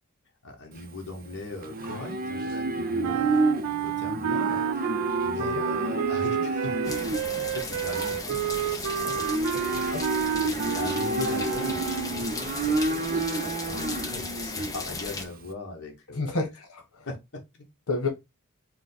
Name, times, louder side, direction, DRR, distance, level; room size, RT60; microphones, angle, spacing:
voice 1, 0.4-3.4 3.6-4.9 5.2-9.6 10.4-16.4 17.1-17.7, left 2 dB, 55° left, 1.3 m, -40 dB
Livestock farm animals working animals, 0.7-15.5, right 2 dB, 40° right, 0.6 m, -30 dB
sound 1, 3.0-12.2, right 9 dB, 75° right, 0.3 m, -30 dB
sound 2, 6.8-15.2, left 3 dB, 15° left, 0.7 m, -36 dB
voice 2, 16.2-16.8 17.9-18.1, left 3 dB, 75° left, 1.2 m, -30 dB
4.8 x 2.3 x 3.9 m
head